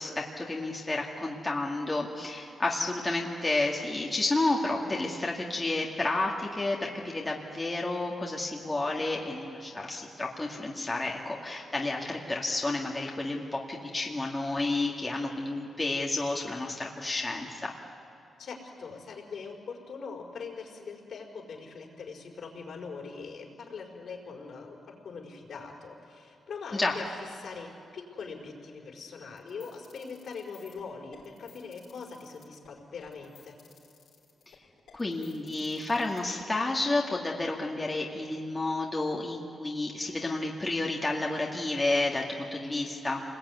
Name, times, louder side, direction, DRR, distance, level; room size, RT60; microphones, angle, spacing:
voice 1, 0.0-17.7 26.7-27.0 34.9-43.2, left 2 dB, 20° left, -2 dB, 2.3 m, -31 dB
voice 2, 18.4-33.6, left 5 dB, 65° left, 0 dB, 5.0 m, -42 dB
sound 1, 29.4-36.8, left 7 dB, 85° left, 5.4 m, -57 dB
28.5 x 21.0 x 9.6 m, 2.6 s
cardioid pair, 100°, 0 cm